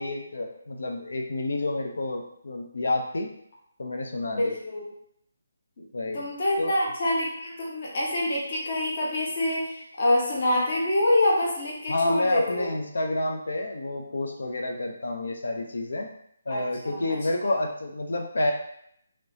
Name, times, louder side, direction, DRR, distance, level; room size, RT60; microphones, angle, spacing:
voice 1, 0.0-3.3 3.8-4.5 5.9-6.2 6.6-6.8 11.9-16.1 16.5-18.5, left 2 dB, 65° left, 2 dB, 0.4 m, -29 dB
voice 2, 4.2-4.9 6.1-12.7 16.5-17.1 17.4-17.5, left 1 dB, 45° left, -4 dB, 0.9 m, -26 dB
3.0 x 2.9 x 2.6 m, 0.71 s
figure-of-eight pair, 145°, 0 cm